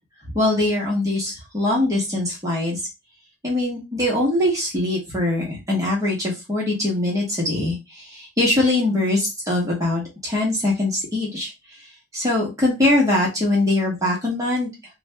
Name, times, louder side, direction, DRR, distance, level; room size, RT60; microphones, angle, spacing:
voice 1, 0.3-2.8 3.4-11.5 12.1-14.7, left 2 dB, 15° right, -4 dB, 1.0 m, -22 dB
2.7 x 2.5 x 3.3 m, 0.24 s
head